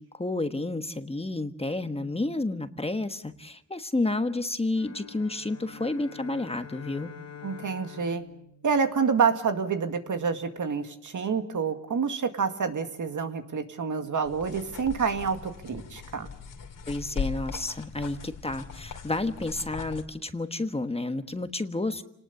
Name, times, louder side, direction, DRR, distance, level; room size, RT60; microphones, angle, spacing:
voice 1, 0.0-7.1 16.9-22.0, left 2 dB, 20° left, 8 dB, 1.3 m, -30 dB
sound 1, 4.7-9.4, left 7 dB, 50° left, 2.3 m, -46 dB
voice 2, 7.4-8.2 8.6-16.3, right 5 dB, 65° right, 6 dB, 2.1 m, -28 dB
sound 2, 14.3-20.0, left 6 dB, 80° left, 2.6 m, -39 dB
29.0 x 19.5 x 6.9 m, 0.72 s
cardioid pair, 90°, 32 cm